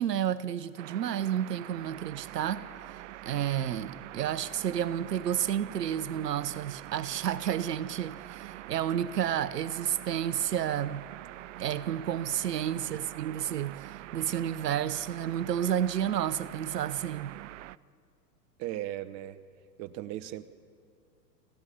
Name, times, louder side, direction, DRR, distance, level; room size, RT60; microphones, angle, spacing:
voice 1, 0.0-11.1 11.6-17.4, right 10 dB, 70° right, 0.8 m, -31 dB
sound 1, 0.8-17.8, right 16 dB, 50° right, 0.5 m, -45 dB
voice 2, 18.6-19.4 19.8-20.4, right 14 dB, 35° right, 0.9 m, -37 dB
27.0 x 15.5 x 7.0 m
figure-of-eight pair, 100°, 50 cm